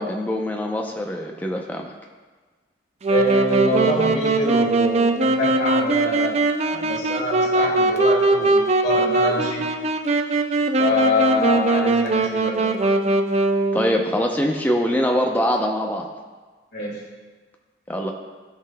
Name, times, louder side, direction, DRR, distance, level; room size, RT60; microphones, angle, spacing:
voice 1, 0.0-1.9 13.7-16.1 17.9-18.1, equal, 10° left, 1 dB, 0.6 m, -23 dB
Wind instrument woodwind instrument, 3.0-14.0, right 2 dB, 35° right, 0.4 m, -20 dB
voice 2, 3.1-6.4 6.6-9.7 10.8-12.7 16.7-17.0, left 1 dB, 70° left, -7 dB, 1.8 m, -25 dB
14.5 x 5.6 x 2.3 m, 1.4 s
head